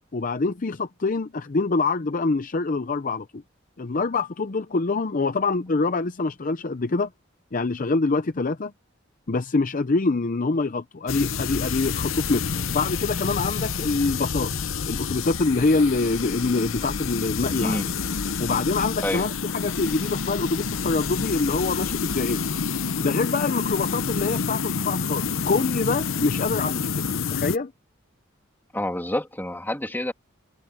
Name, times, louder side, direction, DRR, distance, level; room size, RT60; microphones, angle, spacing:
voice 1, 0.1-3.4 3.8-7.1 7.5-8.7 9.3-14.5 14.9-17.8 18.4-22.5 23.0-27.7, left 3 dB, 40° left, 0.6 m, -25 dB
sound 1, 11.1-27.6, left 5 dB, 80° left, 0.8 m, -28 dB
voice 2, 28.7-30.1, left 1 dB, 10° left, 3.0 m, -28 dB
head